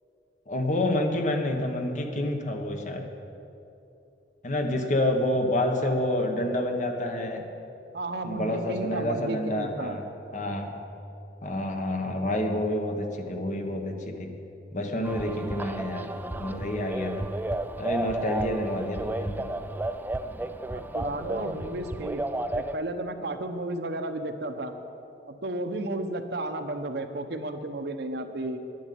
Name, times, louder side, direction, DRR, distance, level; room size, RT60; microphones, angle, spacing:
voice 1, 0.5-3.1 4.4-7.5 8.2-10.0 10.3-10.7 11.4-14.4 14.7-16.1 16.4-17.3 17.8-19.5, left 1 dB, 45° left, 4 dB, 1.3 m, -28 dB
voice 2, 7.9-10.0 20.6-22.2 22.5-24.7 25.3-28.6, right 2 dB, 65° right, 7 dB, 0.9 m, -33 dB
sound 1, 15.0-22.7, right 1 dB, 10° right, 0.4 m, -33 dB
10.5 x 10.0 x 8.6 m, 2.8 s
head